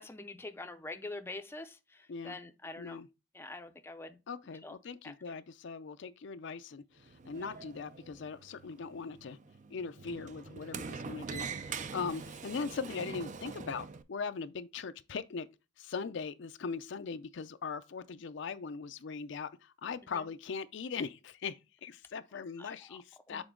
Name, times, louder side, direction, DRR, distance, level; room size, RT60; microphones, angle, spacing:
voice 1, 0.0-3.0 3.3-4.2 4.6-4.8 5.0-5.4 7.4-7.7 20.0-20.3 22.6-23.0 23.3-23.4, left 2 dB, 10° left, 0.5 m, -46 dB
voice 2, 2.8-3.1 4.3-9.4 9.7-15.5 15.8-23.4, left 5 dB, 65° left, 0.5 m, -40 dB
Sliding door, 7.0-14.0, right 5 dB, 40° right, 0.4 m, -44 dB
7.0 x 3.8 x 3.7 m
head